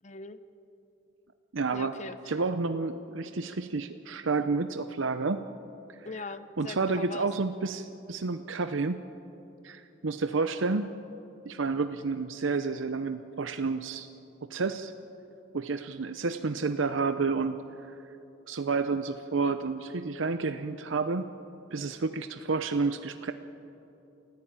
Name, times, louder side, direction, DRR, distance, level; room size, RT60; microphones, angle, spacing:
voice 1, 0.0-0.4 1.7-2.4 6.0-7.3, left 3 dB, 35° left, 12 dB, 0.9 m, -41 dB
voice 2, 1.5-2.0 2.3-5.4 6.6-9.0 9.6-10.9 11.4-14.1 14.4-14.9 15.5-17.6 18.5-21.3 21.7-23.3, right 4 dB, 80° right, 9 dB, 0.7 m, -30 dB
29.5 x 14.5 x 8.9 m, 2.9 s
head